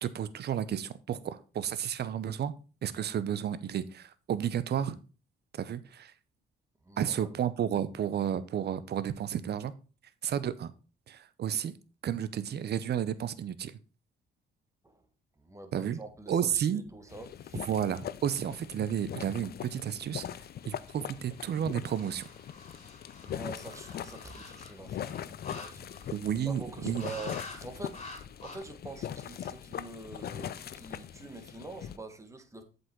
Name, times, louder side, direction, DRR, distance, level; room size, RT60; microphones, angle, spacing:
voice 1, 0.0-2.5 2.8-5.0 5.5-6.1 7.0-9.7 10.2-10.7 11.1-11.7 12.0-13.7 15.7-16.0 16.3-16.8 17.7-20.2 20.7-22.2 26.1-27.1, right 9 dB, 55° right, 0.8 m, -32 dB
voice 2, 6.8-7.3 14.8-15.0 15.4-17.7 23.2-26.2 26.4-28.0 28.4-32.6, right 3 dB, 15° right, 1.5 m, -45 dB
sound 1, 17.1-32.0, left 10 dB, 50° left, 0.5 m, -41 dB
sound 2, 20.6-26.3 27.0-27.6 27.9-28.6, left 2 dB, 30° left, 4.0 m, -48 dB
7.9 x 5.4 x 4.6 m
cardioid pair, 90°, 20 cm